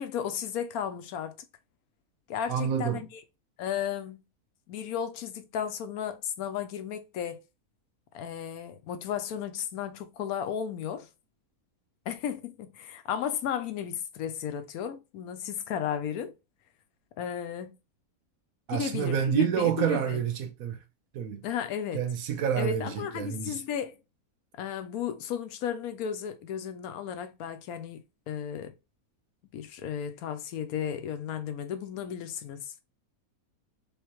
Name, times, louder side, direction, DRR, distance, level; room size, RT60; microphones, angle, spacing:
voice 1, 0.0-1.4 2.3-3.1 3.6-4.2 4.7-7.4 8.1-11.1 12.1-16.3 17.2-17.8 18.7-20.2 21.4-22.0 22.6-24.0 24.6-28.8 29.5-32.7, left 8 dB, 85° left, 1.1 m, -34 dB
voice 2, 2.5-3.0 18.7-20.8 21.1-21.5 21.9-23.6, right 8 dB, 75° right, 1.1 m, -28 dB
3.4 x 3.1 x 3.0 m
omnidirectional pair, 1.5 m